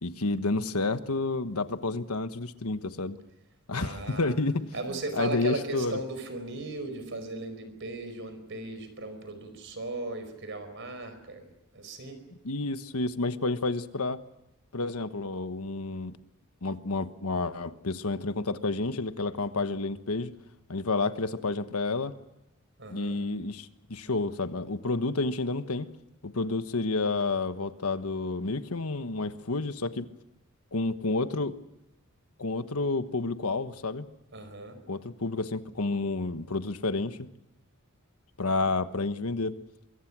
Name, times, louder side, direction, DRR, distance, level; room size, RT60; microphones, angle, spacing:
voice 1, 0.0-3.2 3.7-4.7 5.2-6.0 12.4-14.2 14.7-16.1 16.6-20.3 20.7-22.1 22.9-25.9 26.2-30.1 30.7-31.5 32.4-34.1 34.9-37.3 38.4-39.5, left 3 dB, 85° left, 10 dB, 1.3 m, -30 dB
voice 2, 3.7-4.3 4.7-12.2 22.8-23.2 34.3-34.8, right 2 dB, 55° right, 9 dB, 4.9 m, -37 dB
24.5 x 23.0 x 6.2 m, 0.92 s
head